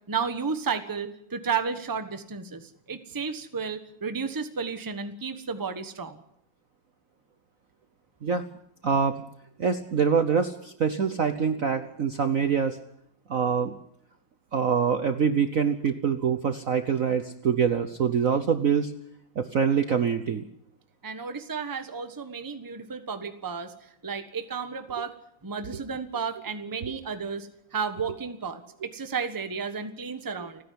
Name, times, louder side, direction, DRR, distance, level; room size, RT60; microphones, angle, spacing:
voice 1, 0.1-6.2 21.0-23.7 24.0-25.1 25.4-30.6, right 5 dB, 15° right, 9 dB, 1.0 m, -32 dB
voice 2, 8.8-9.2 9.6-12.8 13.3-13.8 14.5-18.9 19.4-20.4, right 6 dB, 50° right, 9 dB, 1.1 m, -25 dB
29.5 x 10.5 x 9.5 m, 0.75 s
omnidirectional pair, 2.3 m